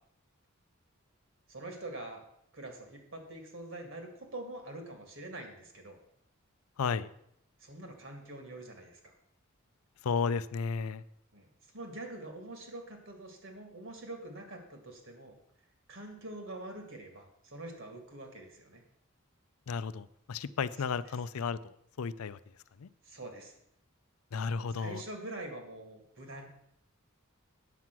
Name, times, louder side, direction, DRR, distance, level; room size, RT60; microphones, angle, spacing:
voice 1, 1.5-2.2 2.5-6.0 7.6-9.0 11.3-11.5 11.7-15.4 15.9-18.8 23.0-23.5 24.8-26.5, right 2 dB, 60° right, 4 dB, 2.2 m, -45 dB
voice 2, 6.8-7.1 10.0-11.0 19.7-22.4 22.8-22.9 24.3-25.0, left 5 dB, 85° left, 15 dB, 0.5 m, -33 dB
9.2 x 7.5 x 6.1 m, 0.74 s
head